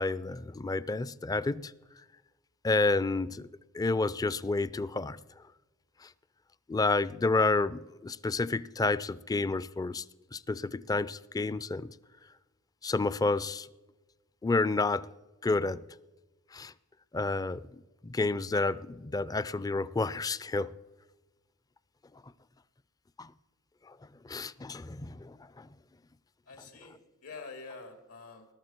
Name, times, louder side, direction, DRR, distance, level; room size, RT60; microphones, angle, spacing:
voice 1, 0.0-1.7 2.6-3.5 3.7-5.2 6.0-6.1 6.7-10.0 10.3-11.9 12.8-13.7 14.4-15.1 15.4-15.8 16.5-16.7 17.1-17.6 18.0-20.7 23.2-23.3 23.9-24.0 24.2-25.7, left 3 dB, 15° left, 0.4 m, -30 dB
voice 2, 26.5-28.5, left 4 dB, 85° left, 2.6 m, -46 dB
20.5 x 12.0 x 4.4 m
head